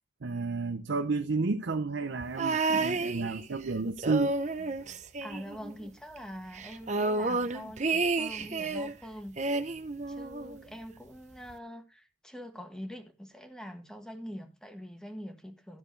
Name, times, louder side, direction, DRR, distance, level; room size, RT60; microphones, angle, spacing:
voice 1, 0.2-4.4, right 4 dB, 90° right, 0.7 m, -31 dB
sound 1, 2.4-3.7 4.0-5.9 6.2-6.3 6.5-8.9 9.4-10.6 11.5-11.6, right 3 dB, 40° right, 0.8 m, -31 dB
voice 2, 5.2-9.4 10.1-15.8, equal, 5° left, 1.5 m, -44 dB
13.5 x 6.9 x 3.2 m
head